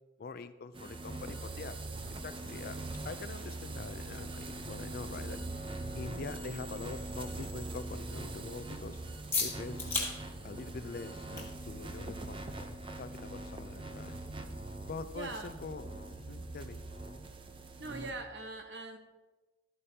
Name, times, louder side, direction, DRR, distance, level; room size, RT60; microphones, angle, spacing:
voice 1, 0.2-1.8 2.1-2.8 3.0-5.4 5.9-9.0 9.4-9.8 10.4-12.4 13.0-14.2 14.9-15.9 16.3-16.8, left 4 dB, 50° left, 12 dB, 0.4 m, -44 dB
sound 1, 0.7-18.1, right 2 dB, 30° right, 0.6 m, -42 dB
sound 2, 1.0-16.3, left 4 dB, 15° left, 2.1 m, -45 dB
voice 2, 6.1-6.4 15.1-15.6 17.8-19.0, right 3 dB, 65° right, 5 dB, 1.1 m, -42 dB
12.5 x 8.5 x 2.8 m, 1.2 s
head